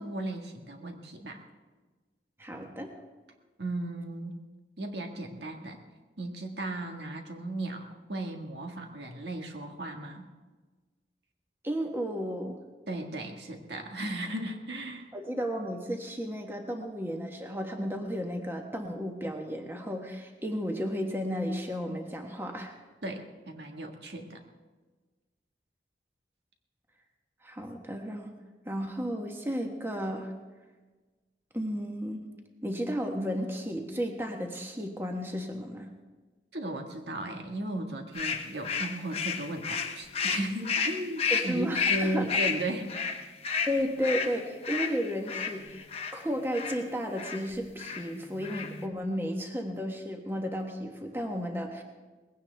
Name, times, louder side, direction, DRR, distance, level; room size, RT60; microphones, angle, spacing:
voice 1, 0.0-1.4 3.6-4.4 4.8-5.8 6.2-10.3 12.9-15.1 23.0-24.4 36.5-42.9, right 1 dB, 75° right, 3 dB, 1.7 m, -36 dB
voice 2, 2.4-2.9 11.6-12.6 15.1-22.8 27.4-28.3 28.6-30.3 31.5-32.2 32.6-35.9 41.3-42.3 43.7-45.8 46.1-51.8, equal, 15° right, 2 dB, 1.2 m, -33 dB
sound 1, 38.2-46.2 46.5-46.8 47.2-47.4 47.8-48.1 48.4-48.9, left 5 dB, 35° left, 1.0 m, -31 dB
20.0 x 16.5 x 3.4 m, 1.3 s
head